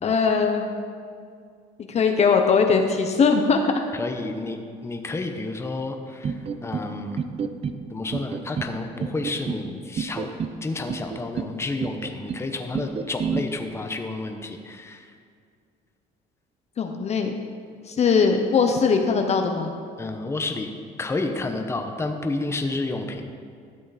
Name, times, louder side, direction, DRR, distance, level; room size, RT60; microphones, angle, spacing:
voice 1, 0.0-0.7 1.9-3.7 16.8-17.3 17.9-19.7, left 5 dB, 40° left, 4 dB, 0.8 m, -20 dB
voice 2, 4.0-6.3 6.6-7.2 7.9-10.3 10.6-15.0 20.0-20.7 21.0-23.4, left 2 dB, 15° left, 5 dB, 0.8 m, -30 dB
sound 1, 6.2-6.9 7.2-7.8 8.1-8.7 9.0-9.6 10.0-10.6 10.9-11.5 11.8-12.4 12.7-13.4, right 6 dB, 35° right, 0.6 m, -29 dB
12.5 x 7.6 x 4.1 m, 2.2 s
cardioid pair, 110°, 17 cm